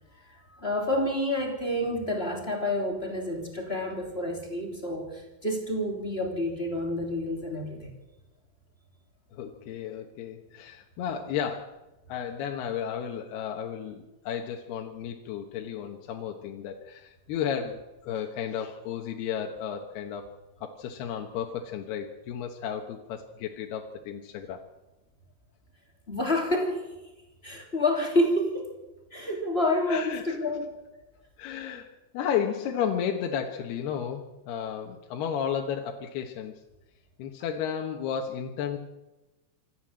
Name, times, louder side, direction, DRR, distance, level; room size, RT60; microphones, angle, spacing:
voice 1, 0.2-7.9 26.1-26.9 27.4-28.7 29.1-30.7, left 1 dB, 15° left, 2 dB, 2.7 m, -29 dB
voice 2, 9.3-11.8 12.1-20.3 20.6-24.6 29.9-30.4 31.4-36.5 37.2-38.8, left 8 dB, 70° left, 3 dB, 3.0 m, -33 dB
26.5 x 13.5 x 7.6 m, 1.1 s
omnidirectional pair, 5.2 m